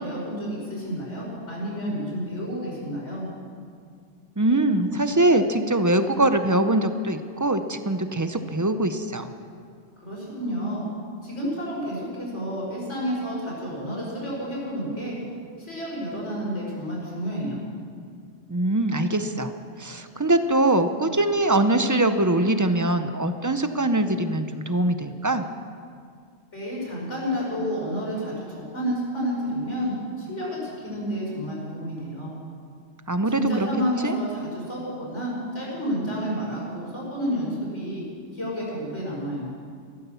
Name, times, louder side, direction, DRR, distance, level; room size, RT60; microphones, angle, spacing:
voice 1, 0.0-3.2 10.0-10.8 11.2-15.2 15.6-17.6 26.5-32.3 33.3-38.0 38.3-39.5, equal, 75° left, -5 dB, 5.6 m, -30 dB
voice 2, 4.4-9.3 18.5-19.5 19.8-25.5 33.1-33.7 34.0-34.2, right 1 dB, 20° right, 9 dB, 0.5 m, -22 dB
13.5 x 13.5 x 7.0 m, 2.2 s
omnidirectional pair, 1.2 m